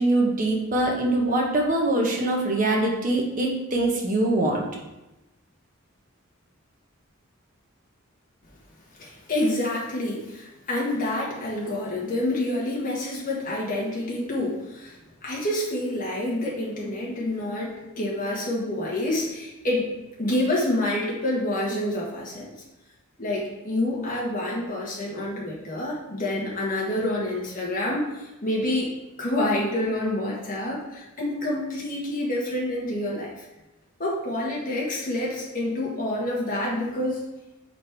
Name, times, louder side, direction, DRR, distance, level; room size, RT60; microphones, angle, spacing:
voice 1, 0.0-4.6, right 2 dB, 40° right, 0 dB, 1.0 m, -23 dB
voice 2, 8.9-19.9 20.2-22.5 23.2-33.3 34.0-37.2, left 1 dB, 40° left, -5 dB, 1.5 m, -28 dB
5.0 x 4.2 x 4.5 m, 0.99 s
head